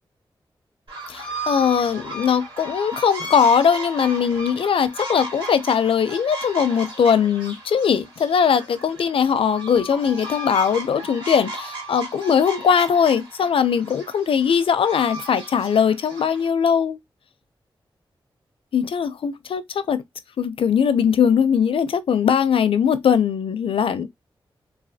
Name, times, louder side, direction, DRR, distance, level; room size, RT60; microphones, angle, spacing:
sound 1, 0.9-16.5, right 1 dB, 60° right, 2.0 m, -35 dB
voice 1, 1.1-17.0 18.7-20.0 20.4-24.1, left 7 dB, 75° left, 0.4 m, -20 dB
3.2 x 2.2 x 2.7 m
cardioid pair, 60°, 9 cm